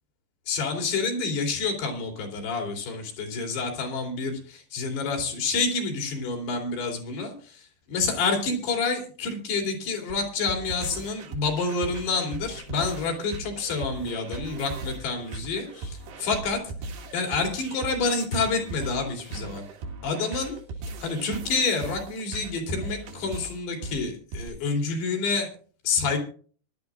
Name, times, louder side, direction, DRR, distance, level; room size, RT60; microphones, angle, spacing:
voice 1, 0.5-16.7 17.1-19.6 20.0-20.6 21.0-25.5 25.9-26.2, left 4 dB, 75° left, 2 dB, 5.0 m, -28 dB
sound 1, 10.1-24.5, right 3 dB, 80° right, 4.0 m, -38 dB
22.5 x 12.0 x 2.5 m, 0.41 s
omnidirectional pair, 4.7 m